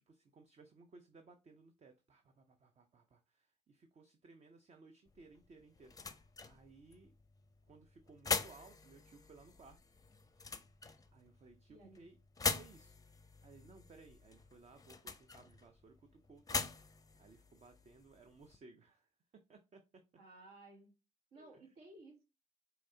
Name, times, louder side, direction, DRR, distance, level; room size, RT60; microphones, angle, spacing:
voice 1, 0.0-7.1 7.7-9.8 11.1-12.2 12.5-16.7 17.2-20.0 21.3-21.6, right 3 dB, 40° right, 0.6 m, -61 dB
sound 1, 5.1-18.6, left 4 dB, 20° left, 0.6 m, -44 dB
voice 2, 11.7-12.1 20.2-20.9 21.3-22.2, right 2 dB, 70° right, 1.4 m, -57 dB
4.4 x 2.8 x 2.7 m
hypercardioid pair, 50°, 18 cm